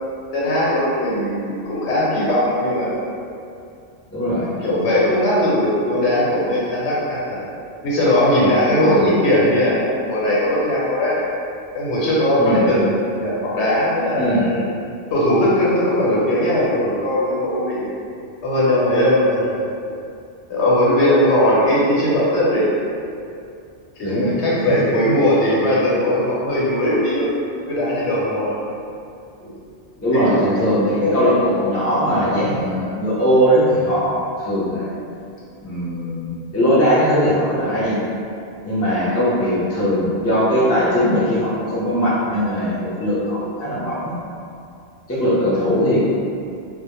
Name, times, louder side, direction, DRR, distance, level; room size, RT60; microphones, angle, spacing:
voice 1, 0.3-2.9 4.6-7.4 7.8-11.3 11.7-14.6 15.1-17.9 18.4-19.6 20.5-22.6 24.0-28.5 30.1-30.5 31.0-31.2, left 1 dB, 90° left, -7 dB, 1.0 m, -19 dB
voice 2, 4.1-4.5 8.8-9.1 12.4-12.6 14.2-14.4 24.0-24.3 30.0-34.9 35.6-38.0 38.6-44.1 45.1-46.0, equal, 25° left, -9 dB, 0.3 m, -19 dB
2.1 x 2.1 x 2.9 m, 2.5 s
omnidirectional pair, 1.1 m